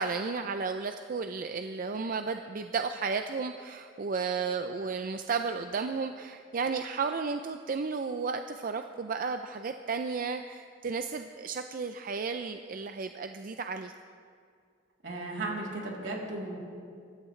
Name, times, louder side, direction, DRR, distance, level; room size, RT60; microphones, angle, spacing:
voice 1, 0.0-13.9, right 5 dB, 50° right, 7 dB, 0.5 m, -33 dB
voice 2, 15.0-16.6, right 2 dB, 80° right, -3 dB, 3.2 m, -35 dB
23.5 x 13.0 x 3.2 m, 2.3 s
head